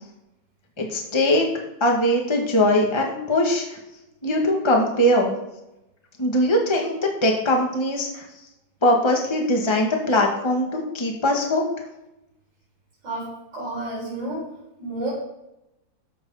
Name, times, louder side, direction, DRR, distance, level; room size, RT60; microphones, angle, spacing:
voice 1, 0.8-1.5 1.8-3.8 4.2-5.3 6.2-8.2 8.8-11.6, left 1 dB, 15° left, 0 dB, 1.8 m, -21 dB
voice 2, 13.0-14.4 14.8-15.1, right 2 dB, 75° right, -10 dB, 6.1 m, -30 dB
14.0 x 6.3 x 5.8 m, 0.90 s
omnidirectional pair, 2.0 m